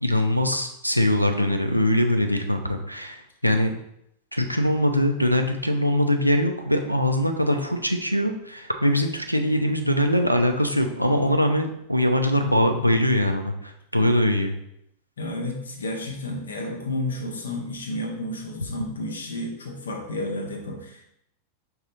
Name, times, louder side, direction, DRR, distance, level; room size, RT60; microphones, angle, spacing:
voice 1, 0.0-3.7 4.3-14.5, left 1 dB, 90° left, 6 dB, 0.4 m, -22 dB
voice 2, 15.2-21.0, left 1 dB, 70° left, 2 dB, 0.8 m, -31 dB
5.3 x 2.4 x 3.8 m, 0.78 s
figure-of-eight pair, 90°, 0 cm